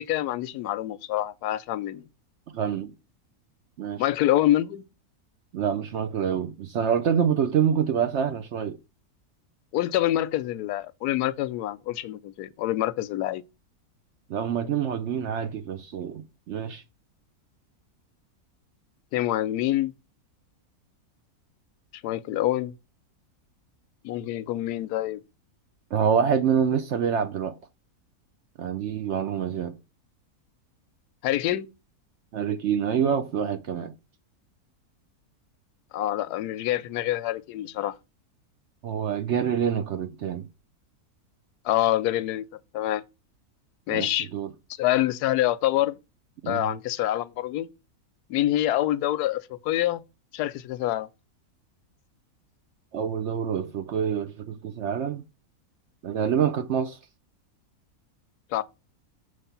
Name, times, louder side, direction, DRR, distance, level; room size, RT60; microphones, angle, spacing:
voice 1, 0.0-2.1 4.0-4.8 9.7-13.4 19.1-19.9 22.0-22.7 24.0-25.2 31.2-31.7 35.9-38.0 41.6-42.4 42.7-43.0 43.9-44.3 44.8-46.0 46.5-47.7 48.3-50.0 50.3-51.1 58.5-58.6, left 14 dB, 90° left, 1.1 m, -26 dB
voice 2, 2.5-2.9 3.8-4.0 5.5-8.8 14.3-16.8 25.9-27.6 28.6-29.8 32.3-33.9 38.8-40.5 43.9-44.5 46.4-46.7 52.9-55.2 56.0-57.0, right 8 dB, 65° right, 0.7 m, -26 dB
6.3 x 3.3 x 5.6 m
omnidirectional pair, 1.6 m